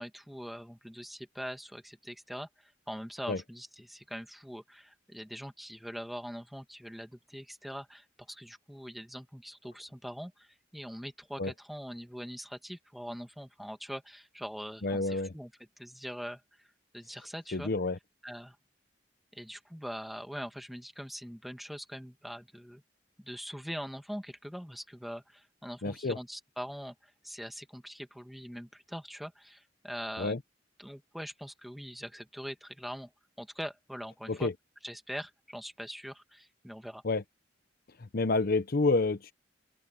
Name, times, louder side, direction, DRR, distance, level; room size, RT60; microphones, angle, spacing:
voice 1, 0.0-15.5 15.8-16.7 16.9-17.7 18.2-18.6 19.3-22.8 23.2-30.4 30.8-33.1 33.4-34.5 34.8-37.0, equal, ahead, 1.8 m, -42 dB
voice 2, 14.8-15.3 17.5-18.0 25.8-26.2 30.2-30.4 34.3-34.5 37.0-37.2 38.0-39.3, left 3 dB, 55° left, 0.8 m, -29 dB
open air
head